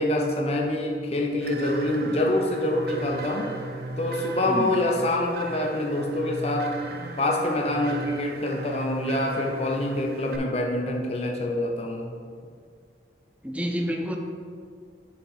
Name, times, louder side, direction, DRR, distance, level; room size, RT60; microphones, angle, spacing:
voice 1, 0.0-3.5 4.0-6.8 7.2-12.1, left 1 dB, 35° left, 1 dB, 0.7 m, -26 dB
sound 1, 1.4-10.4, right 3 dB, 55° right, 0.5 m, -37 dB
voice 2, 13.4-14.2, equal, 5° right, 2 dB, 0.5 m, -28 dB
7.0 x 4.3 x 5.4 m, 2.1 s
head